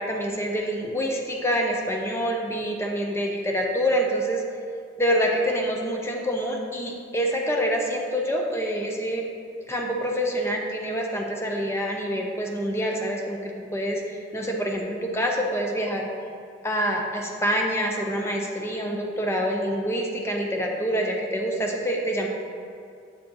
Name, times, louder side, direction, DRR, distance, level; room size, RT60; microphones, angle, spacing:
voice 1, 0.0-4.4 5.0-9.3 9.7-16.1 16.6-22.3, equal, 15° left, 0 dB, 0.7 m, -26 dB
8.6 x 4.4 x 3.8 m, 2.3 s
head